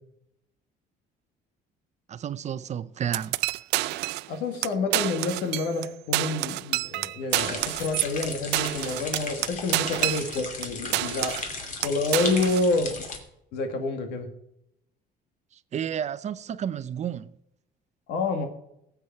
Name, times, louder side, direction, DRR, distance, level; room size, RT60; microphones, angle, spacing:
voice 1, 2.1-3.4 15.7-17.3, right 9 dB, 45° right, 0.6 m, -31 dB
sound 1, 3.1-4.3 4.6-4.7 4.9-5.9 6.1-10.7 10.9-11.5 11.8-12.7, right 19 dB, 85° right, 0.4 m, -28 dB
voice 2, 4.3-11.4 11.8-13.0 13.5-14.3 18.1-18.5, left 3 dB, 90° left, 1.9 m, -28 dB
sound 2, 7.3-13.2, left 4 dB, 50° left, 2.7 m, -36 dB
18.0 x 8.1 x 4.6 m
cardioid pair, 110°, 17 cm